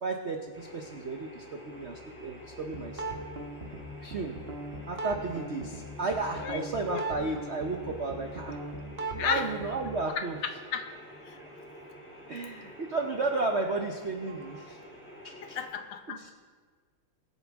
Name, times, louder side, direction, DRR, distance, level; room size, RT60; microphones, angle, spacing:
voice 1, 0.0-3.0 4.0-4.4 4.9-8.6 9.2-10.4 12.3-14.8 15.2-15.6 16.1-16.3, right 3 dB, 65° right, 2 dB, 0.6 m, -33 dB
sound 1, 0.5-15.7, equal, 5° left, 3.7 m, -49 dB
sound 2, 2.7-10.0, right 2 dB, 35° right, 1.1 m, -39 dB
voice 2, 6.4-7.1 9.2-9.5 10.2-11.0 11.2-11.4 15.4-16.3, left 7 dB, 80° left, 8 dB, 1.7 m, -34 dB
21.5 x 8.4 x 3.6 m, 1.5 s
omnidirectional pair, 2.4 m